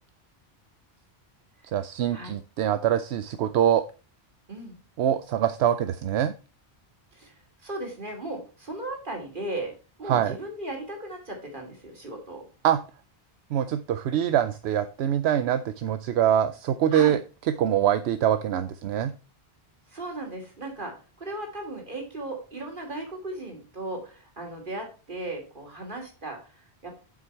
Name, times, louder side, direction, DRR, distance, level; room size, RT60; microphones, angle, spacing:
voice 1, 1.7-3.8 5.0-6.3 10.1-10.4 12.6-12.8 13.5-17.2 17.6-19.1, right 10 dB, 80° right, 10 dB, 0.8 m, -24 dB
voice 2, 7.1-12.5 16.9-17.2 19.9-27.0, right 2 dB, 50° right, 2 dB, 2.8 m, -37 dB
7.6 x 6.1 x 4.4 m, 0.34 s
omnidirectional pair, 1.1 m